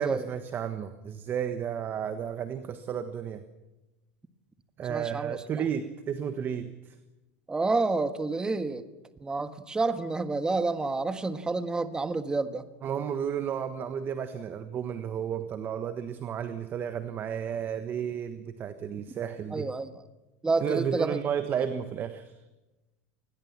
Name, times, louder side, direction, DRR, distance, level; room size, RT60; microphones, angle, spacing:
voice 1, 0.0-3.4 4.8-6.9 12.8-19.7 20.6-22.4, right 8 dB, 30° right, 10 dB, 1.3 m, -32 dB
voice 2, 4.8-5.4 7.5-8.9 9.2-12.6 19.5-20.0 20.4-21.2, right 3 dB, 10° right, 10 dB, 1.6 m, -29 dB
27.0 x 20.5 x 7.5 m, 1.1 s
supercardioid pair, 135°, 7 cm